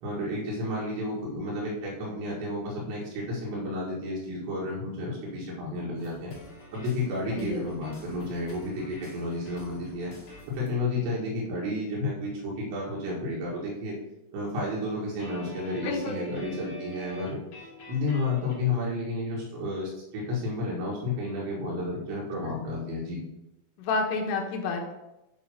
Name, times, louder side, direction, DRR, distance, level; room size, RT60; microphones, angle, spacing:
voice 1, 0.0-6.3 6.7-10.1 10.5-14.0 14.3-17.4 17.9-23.2, left 2 dB, 90° right, -5 dB, 4.0 m, -31 dB
sound 1, 6.0-10.7 15.2-18.5, equal, 45° left, 1.7 m, -46 dB
voice 2, 15.8-16.5 23.8-24.9, left 4 dB, 75° left, 2 dB, 2.9 m, -30 dB
9.0 x 4.1 x 5.5 m, 0.94 s
omnidirectional pair, 5.1 m